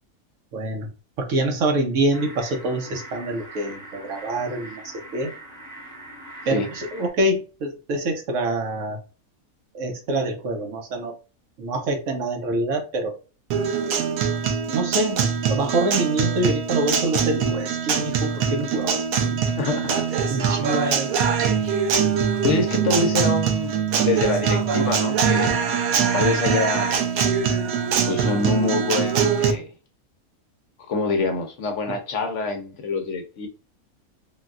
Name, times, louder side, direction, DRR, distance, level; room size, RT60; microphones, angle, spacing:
voice 1, 0.5-0.9 1.2-5.3 6.5-9.0 9.7-11.2 11.6-13.2 14.7-19.4 20.3-21.2 31.9-32.0, right 2 dB, 65° right, 1.1 m, -26 dB
sound 1, 2.1-7.1, right 1 dB, 35° right, 1.0 m, -41 dB
Guitar, 13.5-29.5, right 7 dB, 85° right, 1.1 m, -23 dB
voice 2, 19.6-20.0 20.4-20.9 22.4-25.6 26.0-27.0 28.1-29.7 30.9-33.5, left 3 dB, 65° left, 0.9 m, -26 dB
3.8 x 2.2 x 2.4 m
omnidirectional pair, 1.5 m